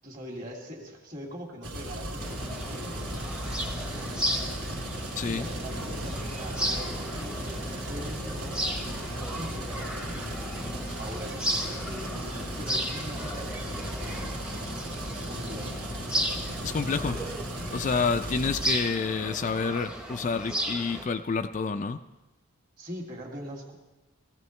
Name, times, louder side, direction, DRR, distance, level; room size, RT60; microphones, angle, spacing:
voice 1, 0.0-3.1 5.1-8.8 9.2-10.3 11.0-12.1 12.6-14.1 15.2-15.9 16.8-17.3 22.8-23.7, equal, 40° right, 1 dB, 2.4 m, -42 dB
sound 1, 1.6-18.7, right 1 dB, 80° right, 2.9 m, -36 dB
sound 2, 2.2-21.1, equal, 5° right, 0.9 m, -35 dB
voice 2, 5.1-5.5 16.6-17.2 17.7-22.0, left 5 dB, 35° left, 8 dB, 0.3 m, -29 dB
17.0 x 15.0 x 3.2 m, 1.1 s
head